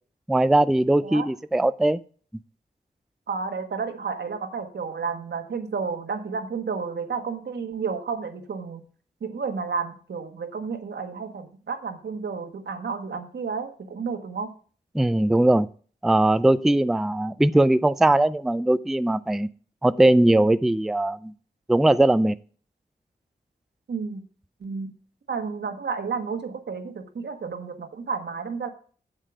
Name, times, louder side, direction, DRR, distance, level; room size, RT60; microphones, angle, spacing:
voice 1, 0.3-2.0 14.9-15.7 16.0-19.5 19.8-21.3 21.7-22.3, right 1 dB, ahead, 14 dB, 0.3 m, -20 dB
voice 2, 3.3-8.8 9.2-14.5 23.9-24.2 24.6-24.9 25.3-28.7, right 5 dB, 85° right, 6 dB, 1.4 m, -31 dB
8.3 x 7.6 x 4.7 m, 0.42 s
wide cardioid pair, 120°, 17 cm